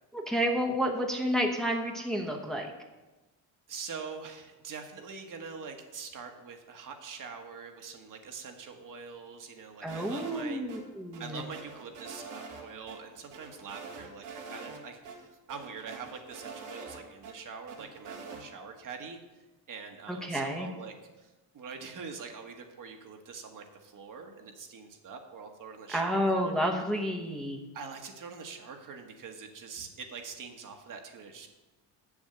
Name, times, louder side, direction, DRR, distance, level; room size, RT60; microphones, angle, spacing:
voice 1, 0.1-2.7 9.8-11.4 20.1-20.7 25.9-27.7, equal, ahead, 1 dB, 1.0 m, -30 dB
voice 2, 3.7-10.6 11.2-19.2 19.7-26.6 27.7-31.5, right 5 dB, 50° right, 4 dB, 1.4 m, -44 dB
sound 1, 9.9-10.8 11.1-12.6 12.9-13.0 13.3-14.8 15.0-15.1 15.5-17.3 17.7-18.4, right 4 dB, 90° right, 2.2 m, -44 dB
7.3 x 7.1 x 7.9 m, 1.1 s
cardioid pair, 120°, 41 cm